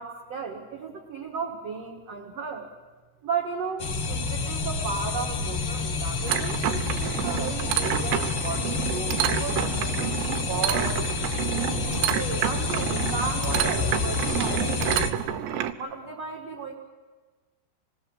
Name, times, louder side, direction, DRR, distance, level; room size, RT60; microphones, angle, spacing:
voice 1, 0.0-2.7 3.2-10.9 11.8-16.7, right 5 dB, 55° right, -1 dB, 1.9 m, -35 dB
sound 1, 3.8-15.1, left 4 dB, 85° left, 1.2 m, -29 dB
sound 2, 6.3-15.7, right 11 dB, 85° right, 3.1 m, -29 dB
26.5 x 20.5 x 7.9 m, 1.3 s
omnidirectional pair, 4.9 m